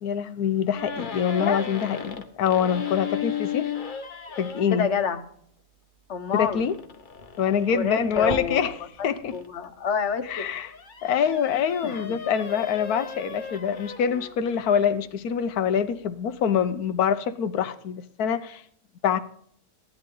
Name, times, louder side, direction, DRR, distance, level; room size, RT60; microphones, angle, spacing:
voice 1, 0.0-3.7 4.4-4.9 6.3-6.8 7.4-8.7 9.0-9.3 10.3-10.7 11.0-18.6 19.0-19.2, left 8 dB, 85° left, 1.3 m, -25 dB
sound 1, 0.7-4.9 6.3-9.5 10.1-15.0, left 7 dB, 40° left, 1.1 m, -36 dB
voice 2, 4.7-5.2 6.1-6.6 7.7-8.7 9.3-10.4 11.8-12.2, left 6 dB, 55° left, 1.4 m, -27 dB
15.5 x 11.0 x 3.8 m
omnidirectional pair, 1.6 m